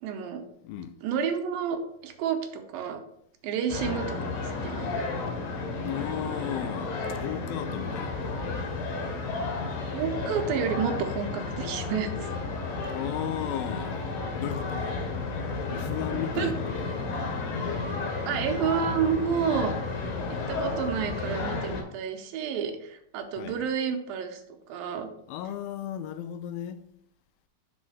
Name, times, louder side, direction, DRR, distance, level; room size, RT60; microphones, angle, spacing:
voice 1, 0.0-0.4 1.0-3.0 3.4-5.0 9.9-12.3 16.4-16.5 18.3-19.8 20.3-24.4 24.7-25.1, right 7 dB, 80° right, 2.5 m, -30 dB
voice 2, 0.6-1.0 5.8-8.5 12.9-14.0 14.3-15.0 15.7-17.1 23.4-23.7 25.3-26.8, left 10 dB, 85° left, 2.3 m, -35 dB
sound 1, 3.7-21.8, left 3 dB, 70° left, 3.6 m, -32 dB
6.3 x 4.3 x 6.2 m
omnidirectional pair, 4.3 m